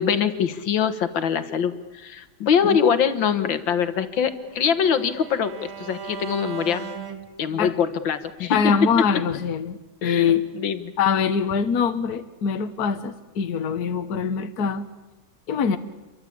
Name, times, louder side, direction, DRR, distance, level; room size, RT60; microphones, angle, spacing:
voice 1, 0.0-6.9 7.4-8.7 10.0-10.3 10.5-10.8, left 7 dB, 75° left, 11 dB, 2.1 m, -23 dB
Bowed string instrument, 3.7-7.9, right 7 dB, 90° right, 3.0 m, -38 dB
voice 2, 8.5-10.5 11.0-14.9 15.5-15.8, left 6 dB, 55° left, 8 dB, 1.5 m, -23 dB
28.5 x 23.5 x 8.7 m, 1.1 s
omnidirectional pair, 2.1 m